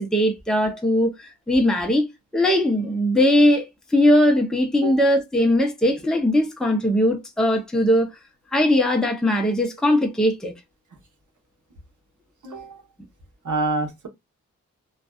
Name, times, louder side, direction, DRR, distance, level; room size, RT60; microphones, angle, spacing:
voice 1, 0.0-2.1 2.3-8.1 8.5-10.5, left 1 dB, ahead, 0.6 m, -20 dB
voice 2, 12.4-12.8 13.4-14.1, right 2 dB, 65° right, 1.0 m, -27 dB
2.6 x 2.3 x 2.2 m
wide cardioid pair, 95°, 32 cm